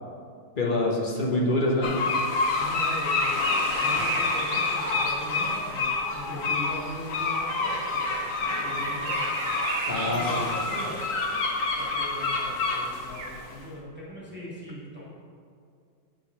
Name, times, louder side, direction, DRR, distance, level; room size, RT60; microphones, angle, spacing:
voice 1, 0.6-1.9 9.9-10.5, left 1 dB, 35° left, -3 dB, 0.9 m, -25 dB
sound 1, 1.8-13.5, left 3 dB, 65° left, 0.8 m, -28 dB
voice 2, 2.5-9.3 9.9-11.0 11.7-15.0, left 1 dB, 5° right, -9 dB, 1.9 m, -39 dB
sound 2, 2.9-5.6 8.5-11.0 12.4-12.5 13.1-13.3, right 5 dB, 60° right, 1.1 m, -35 dB
7.2 x 5.1 x 5.7 m, 2.3 s
omnidirectional pair, 2.2 m